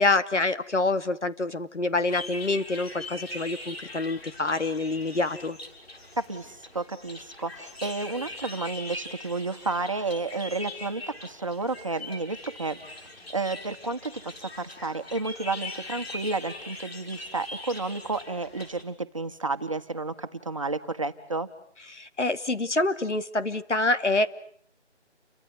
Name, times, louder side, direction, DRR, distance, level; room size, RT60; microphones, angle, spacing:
voice 1, 0.0-5.6 21.9-24.3, left 2 dB, 90° left, 10 dB, 2.7 m, -26 dB
sound 1, 2.1-18.8, left 2 dB, 60° left, 6.5 m, -41 dB
voice 2, 6.2-12.8 13.3-21.5, right 3 dB, 30° right, 8 dB, 1.6 m, -31 dB
30.0 x 24.5 x 8.0 m, 0.62 s
figure-of-eight pair, 175°, 35 cm